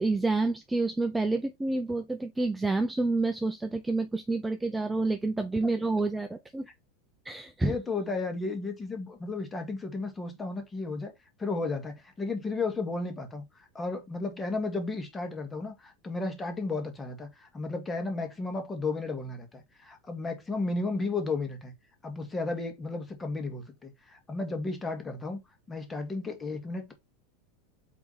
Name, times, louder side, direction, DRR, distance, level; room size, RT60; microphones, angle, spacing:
voice 1, 0.0-6.7 7.2-7.8, right 3 dB, 5° right, 0.6 m, -28 dB
voice 2, 7.6-11.1 11.4-21.7 22.0-25.4 25.7-26.9, left 3 dB, 15° left, 1.9 m, -33 dB
8.3 x 3.5 x 4.2 m
supercardioid pair, 155°, 0 cm